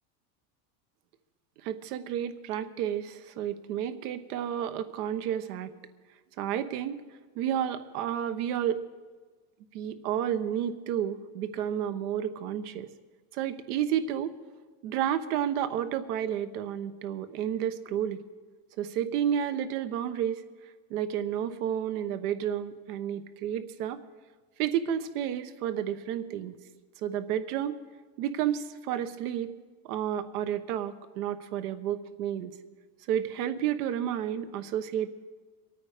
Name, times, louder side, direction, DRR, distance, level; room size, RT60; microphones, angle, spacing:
voice 1, 1.6-5.7 6.4-7.0 7.4-8.8 9.7-12.9 13.3-14.3 14.8-18.2 18.8-20.4 20.9-24.0 24.6-26.5 27.0-27.8 28.2-29.5 29.8-32.5 33.1-35.1, right 10 dB, 90° right, 11 dB, 1.2 m, -31 dB
23.0 x 9.2 x 5.0 m, 1.4 s
supercardioid pair, 135°, 44 cm